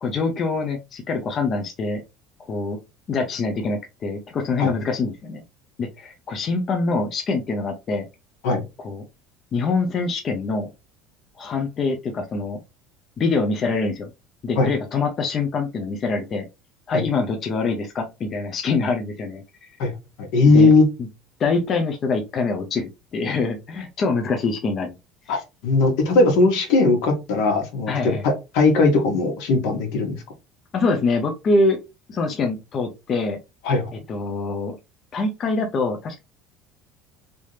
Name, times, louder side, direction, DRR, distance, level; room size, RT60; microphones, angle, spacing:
voice 1, 0.0-2.0 2.5-2.8 3.1-5.4 5.8-8.1 8.8-9.0 9.5-10.7 11.4-12.6 13.2-14.1 14.4-16.5 16.9-19.7 20.4-20.7 21.0-21.1 21.4-25.0 25.3-25.4 27.9-28.3 30.7-31.8 32.1-33.4 33.9-34.8 35.1-36.2, left 3 dB, 30° left, 3 dB, 0.6 m, -24 dB
voice 2, 20.3-20.9 25.3-30.2 33.6-33.8, left 3 dB, 75° left, 3 dB, 1.6 m, -18 dB
3.4 x 2.7 x 3.2 m, 0.25 s
cardioid pair, 155°, 0 cm